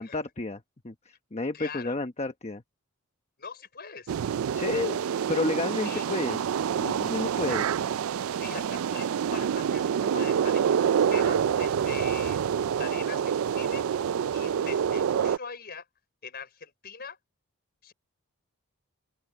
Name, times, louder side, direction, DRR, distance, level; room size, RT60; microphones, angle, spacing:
voice 1, 0.0-2.6 4.5-5.0 5.3-6.4 6.8-7.7, left 2 dB, 30° left, 1.0 m, -31 dB
voice 2, 1.5-1.9 3.4-4.1 5.8-6.0 8.4-13.9 14.3-15.8 16.2-17.2 17.8-17.9, left 6 dB, 45° left, 4.9 m, -42 dB
sound 1, 4.1-15.4, right 8 dB, 65° right, 0.3 m, -27 dB
open air
head